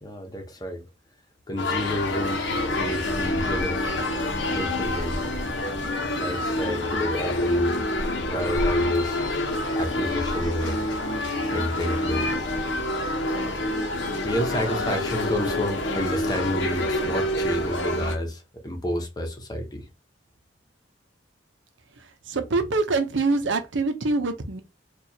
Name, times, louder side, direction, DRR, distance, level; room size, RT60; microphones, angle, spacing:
voice 1, 0.0-0.9 1.5-4.0 4.4-5.2 6.1-7.7 8.3-9.2 9.8-10.8 11.5-12.3 14.2-19.9, equal, 20° left, 0.8 m, -30 dB
sound 1, 1.6-18.2, left 1 dB, 85° left, 0.9 m, -27 dB
voice 2, 22.3-24.6, right 3 dB, 90° right, 0.7 m, -24 dB
4.5 x 2.4 x 2.8 m
head